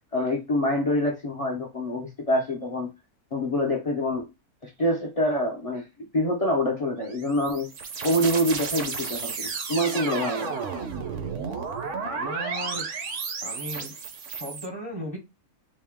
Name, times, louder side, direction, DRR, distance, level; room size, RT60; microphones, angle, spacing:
voice 1, 0.1-2.9 3.3-4.3 4.6-5.8 6.1-7.7 8.0-10.6, left 1 dB, 40° left, 0.5 m, -26 dB
sound 1, 7.0-14.7, right 5 dB, 60° right, 0.9 m, -33 dB
voice 2, 12.0-12.9 13.4-13.9 14.3-15.2, equal, 25° right, 0.6 m, -36 dB
4.2 x 2.2 x 3.5 m
omnidirectional pair, 1.6 m